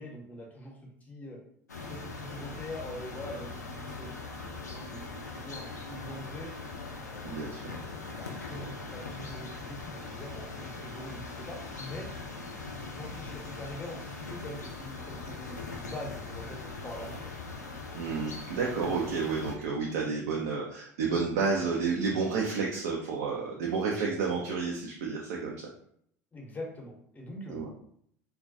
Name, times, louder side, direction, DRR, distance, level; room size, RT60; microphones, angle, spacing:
voice 1, 0.0-1.4 1.9-4.1 4.7-6.5 7.0-12.1 12.9-17.3 26.3-27.7, left 1 dB, 15° left, 0 dB, 0.7 m, -43 dB
sound 1, 1.7-19.6, left 3 dB, 80° left, 0.4 m, -41 dB
voice 2, 7.2-7.6 17.9-25.6 27.5-27.7, right 4 dB, 60° right, -1 dB, 0.4 m, -30 dB
2.2 x 2.2 x 2.6 m, 0.66 s
figure-of-eight pair, 70°, 9 cm